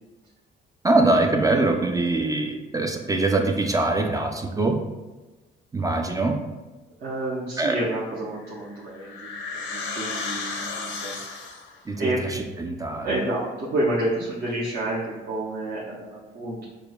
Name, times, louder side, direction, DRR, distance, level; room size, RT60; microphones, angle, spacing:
voice 1, 0.8-4.8 5.7-6.4 7.6-7.8 11.9-12.0 12.3-13.1, right 2 dB, 20° right, 3 dB, 0.3 m, -23 dB
voice 2, 7.0-11.2 12.0-12.3 13.0-16.6, right 1 dB, 55° right, -7 dB, 0.7 m, -29 dB
sound 1, 8.4-11.8, left 4 dB, 70° left, 0.6 m, -33 dB
4.9 x 2.1 x 2.3 m, 1.2 s
cardioid pair, 90°, 20 cm